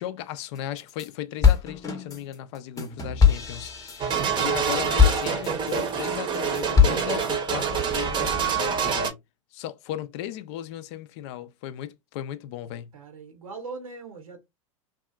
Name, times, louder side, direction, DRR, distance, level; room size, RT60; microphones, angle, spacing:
voice 1, 0.0-3.9 4.4-9.2 9.5-12.9, left 12 dB, 55° left, 0.5 m, -36 dB
sound 1, 0.6-1.1 1.4-5.9 6.3-7.3, left 6 dB, 20° left, 0.8 m, -22 dB
sound 2, 4.0-9.1, right 7 dB, 25° right, 0.7 m, -26 dB
voice 2, 12.9-14.4, right 4 dB, 85° right, 0.8 m, -40 dB
2.8 x 2.3 x 2.3 m
hypercardioid pair, 100°, 17 cm